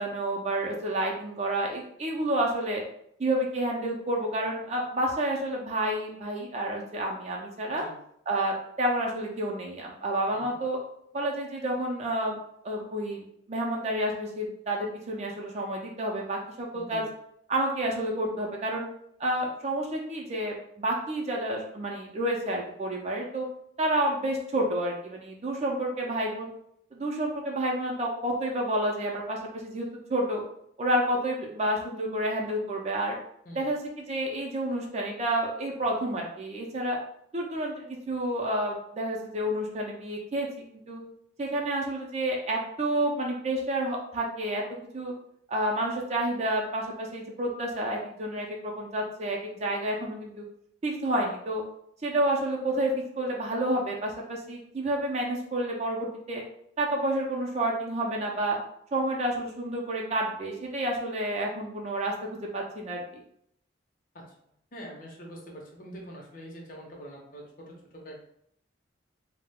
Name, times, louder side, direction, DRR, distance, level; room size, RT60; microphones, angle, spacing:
voice 1, 0.0-2.8 3.2-7.8 8.3-10.8 11.1-12.4 12.6-17.0 17.5-18.9 19.2-23.5 23.8-26.5 26.9-30.4 30.8-33.2 33.6-37.0 37.3-40.5 40.9-41.0 41.4-44.6 44.9-45.1 45.5-50.4 50.8-51.6 52.0-56.4 56.8-58.6 58.9-63.2, right 1 dB, 35° right, -1 dB, 0.4 m, -29 dB
voice 2, 16.7-17.1 33.5-33.7 64.1-68.2, equal, 45° left, -1 dB, 0.6 m, -45 dB
2.3 x 2.0 x 3.4 m, 0.72 s
head